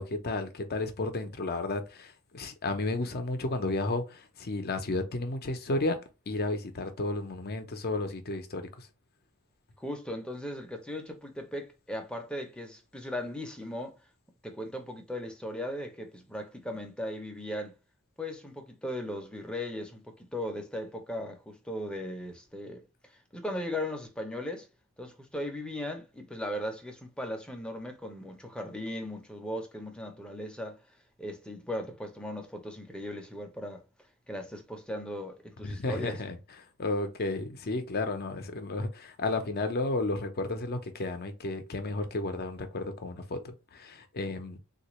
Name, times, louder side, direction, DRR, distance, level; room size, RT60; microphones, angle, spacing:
voice 1, 0.0-6.0 6.3-8.9 35.6-36.4 36.8-44.6, left 2 dB, 45° left, 0.6 m, -32 dB
voice 2, 9.8-14.0 14.4-17.8 18.2-24.7 25.0-30.8 31.2-33.8 34.3-36.2, left 1 dB, 5° left, 0.6 m, -38 dB
3.7 x 2.4 x 3.0 m
head